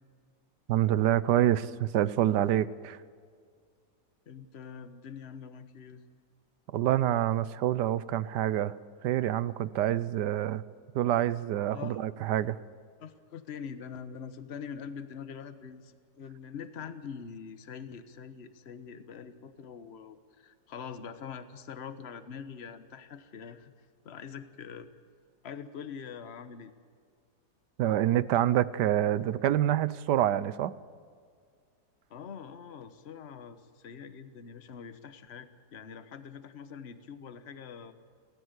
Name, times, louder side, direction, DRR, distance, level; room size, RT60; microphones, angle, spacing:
voice 1, 0.7-3.0 6.7-8.7 9.0-10.6 10.9-12.6 27.8-30.7, right 12 dB, 85° right, 17 dB, 1.3 m, -27 dB
voice 2, 4.3-6.0 11.7-12.1 13.0-23.7 24.0-24.9 25.4-26.7 32.1-37.9, left 7 dB, 45° left, 10 dB, 1.3 m, -44 dB
30.0 x 14.0 x 8.2 m, 2.1 s
omnidirectional pair, 1.8 m